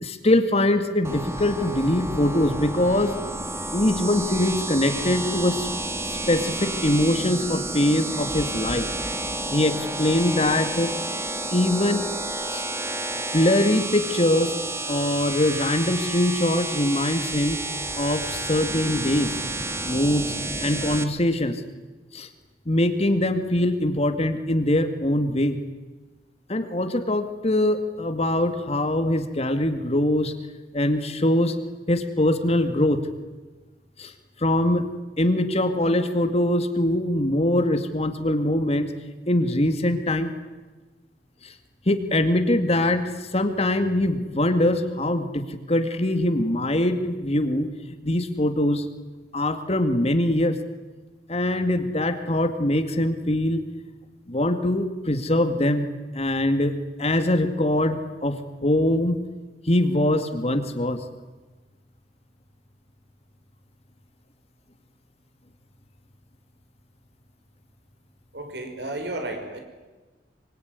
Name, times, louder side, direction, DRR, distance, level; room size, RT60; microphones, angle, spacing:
voice 1, 0.0-3.1 3.7-5.7 6.3-8.9 9.5-10.9 11.5-12.0 12.5-12.6 13.3-14.5 14.9-17.6 18.0-19.3 19.9-20.3 20.6-21.6 22.1-22.3 22.7-25.6 26.5-30.3 30.7-31.6 31.9-33.0 34.0-34.1 34.4-34.8 35.2-38.9 39.3-40.3 41.4-41.5 41.9-43.0 43.3-47.7 48.0-48.8 49.3-50.6 51.3-53.6 54.3-55.9 56.1-59.2 59.7-61.0, left 1 dB, 35° left, 8 dB, 2.1 m, -22 dB
sound 1, 1.0-21.0, right 2 dB, 15° right, 1.9 m, -30 dB
voice 2, 68.3-69.6, right 2 dB, 70° right, 5 dB, 5.7 m, -32 dB
25.0 x 24.0 x 9.6 m, 1.2 s
head